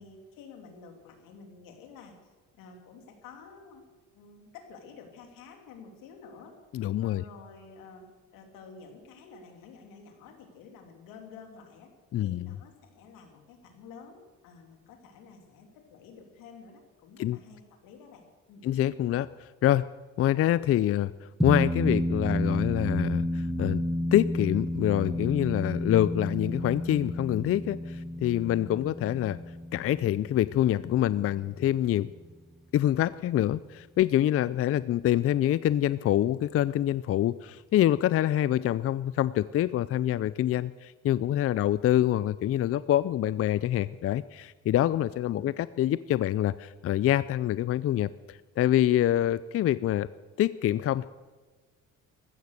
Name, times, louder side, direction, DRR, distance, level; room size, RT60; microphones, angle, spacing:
voice 1, 0.0-3.8 4.1-6.6 7.0-8.1 8.3-11.9 12.2-18.2 18.5-18.6, left 5 dB, 90° left, 4 dB, 3.1 m, -50 dB
voice 2, 6.7-7.2 12.1-12.5 17.2-17.4 18.6-19.8 20.2-21.1 21.4-23.8 24.1-29.4 29.7-32.1 32.7-50.1 50.4-51.1, left 12 dB, 45° left, 17 dB, 0.4 m, -26 dB
sound 1, 21.4-32.1, equal, ahead, 0.6 m, -31 dB
15.0 x 13.0 x 6.6 m, 1.3 s
cardioid pair, 95°, 32 cm